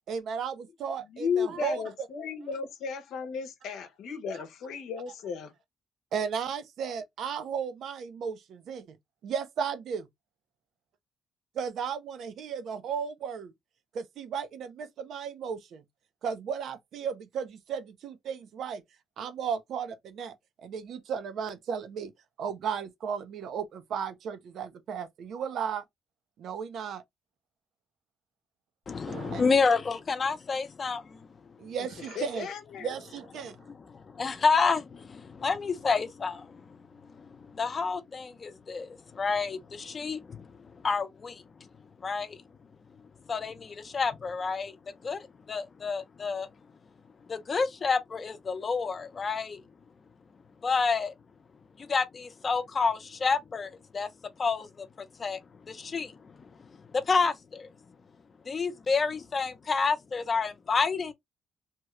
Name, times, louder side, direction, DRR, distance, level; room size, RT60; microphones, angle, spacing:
voice 1, 0.1-1.8 6.1-9.0 9.2-10.0 11.6-13.5 13.9-15.8 16.2-18.8 19.2-20.3 20.6-22.1 22.4-25.8 26.4-27.0 29.1-29.4 31.6-32.5 32.8-33.6, right 7 dB, 70° right, 0.6 m, -35 dB
voice 2, 1.0-5.5 32.0-32.9, left 6 dB, 80° left, 0.7 m, -34 dB
voice 3, 28.9-31.3 33.9-36.8 37.1-41.7 42.0-42.4 43.3-44.7 45.0-46.5 47.3-49.6 50.6-51.1 51.8-54.1 54.4-54.9 55.2-55.4 55.7-56.3 56.9-57.7 58.5-61.1, left 4 dB, 40° left, 0.7 m, -29 dB
2.9 x 2.3 x 3.0 m
cardioid pair, 90°, 0 cm